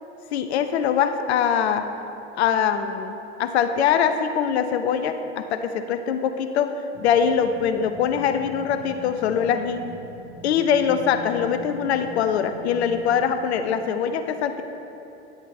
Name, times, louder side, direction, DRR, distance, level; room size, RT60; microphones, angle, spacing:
voice 1, 0.3-1.8 2.4-6.7 7.0-9.8 10.4-14.6, left 7 dB, 75° left, 9 dB, 0.5 m, -23 dB
sound 1, 6.9-13.7, equal, 35° right, 1.5 m, -42 dB
10.0 x 7.9 x 3.5 m, 3.0 s
figure-of-eight pair, 70°, 34 cm